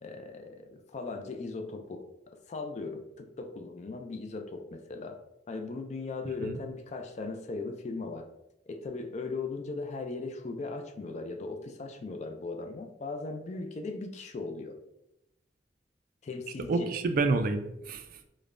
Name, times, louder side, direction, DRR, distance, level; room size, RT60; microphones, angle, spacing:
voice 1, 0.0-5.2 5.5-8.3 8.7-14.8 16.2-16.9, left 3 dB, 40° left, 6 dB, 0.4 m, -38 dB
voice 2, 16.7-18.3, right 3 dB, 55° right, 8 dB, 0.3 m, -29 dB
5.0 x 2.2 x 2.5 m, 0.86 s
head